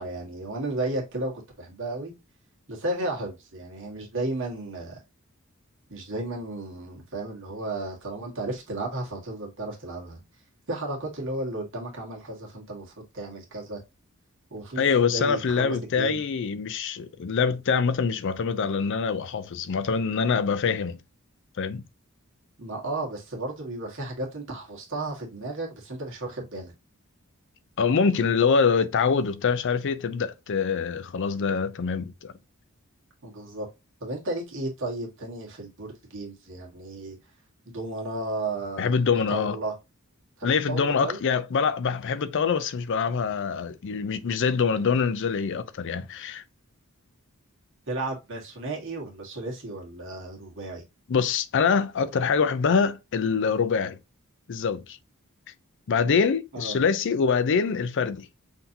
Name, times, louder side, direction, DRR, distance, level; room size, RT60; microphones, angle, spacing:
voice 1, 0.0-1.3 1.6-2.1 2.7-5.0 5.9-10.2 10.7-13.8 14.5-14.9 15.1-16.2 22.6-26.7 33.2-33.7 34.0-37.2 37.7-38.9 39.3-39.7 40.4-41.2 47.9-50.8 56.5-56.8, right 2 dB, 60° right, 1.5 m, -33 dB
voice 2, 14.8-21.0 21.6-21.8 27.8-32.3 38.8-39.6 40.4-46.4 51.1-54.0 54.5-55.0 55.9-58.3, left 5 dB, 55° left, 0.4 m, -24 dB
5.8 x 2.8 x 2.7 m
head